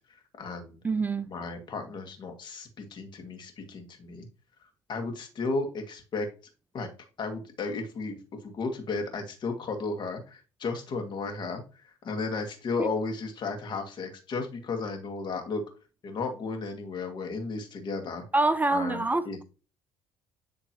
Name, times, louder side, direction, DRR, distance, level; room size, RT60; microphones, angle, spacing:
voice 1, 0.1-0.8 1.2-4.3 4.9-6.3 6.7-6.9 7.2-15.6 16.0-18.2 18.7-19.4, left 3 dB, 50° left, 2.1 m, -34 dB
voice 2, 0.8-1.3 12.8-12.9 18.3-19.4, right 2 dB, 15° right, 0.4 m, -26 dB
10.5 x 3.7 x 3.0 m
supercardioid pair, 75°, 10 cm